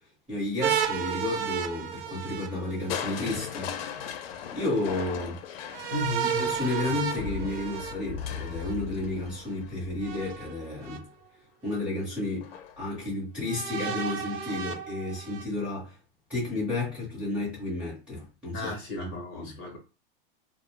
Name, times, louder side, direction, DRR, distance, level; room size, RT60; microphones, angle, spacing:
voice 1, 0.3-3.7 4.5-5.4 6.4-11.0 11.6-15.9 16.3-18.7 19.0-19.1 19.3-19.5, left 2 dB, 5° right, 0.8 m, -32 dB
sound 1, 0.6-3.3 5.7-8.7 10.0-11.0 11.7-11.8 13.5-15.4, right 8 dB, 75° right, 0.5 m, -33 dB
Crushing, 2.9-10.8 12.4-12.9 13.4-13.5, left 8 dB, 90° left, 0.5 m, -38 dB
voice 2, 5.9-6.7 18.5-19.8, left 2 dB, 30° left, 0.7 m, -35 dB
2.5 x 2.0 x 3.1 m
supercardioid pair, 180°, 29 cm